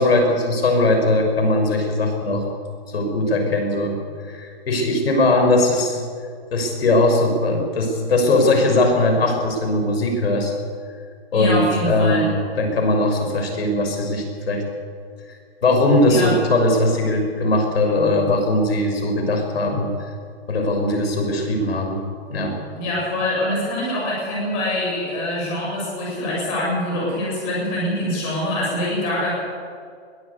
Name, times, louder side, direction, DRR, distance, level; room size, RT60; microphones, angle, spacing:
voice 1, 0.0-2.4 2.9-4.0 4.3-6.0 6.5-10.5 11.3-14.6 15.6-19.9 20.5-22.0 22.3-22.6, left 2 dB, 65° left, 3 dB, 6.2 m, -19 dB
voice 2, 11.3-12.3 16.0-16.3 22.7-29.3, left 1 dB, 20° left, -4 dB, 7.4 m, -24 dB
21.5 x 16.0 x 8.4 m, 2.1 s
hypercardioid pair, 180°, 32 cm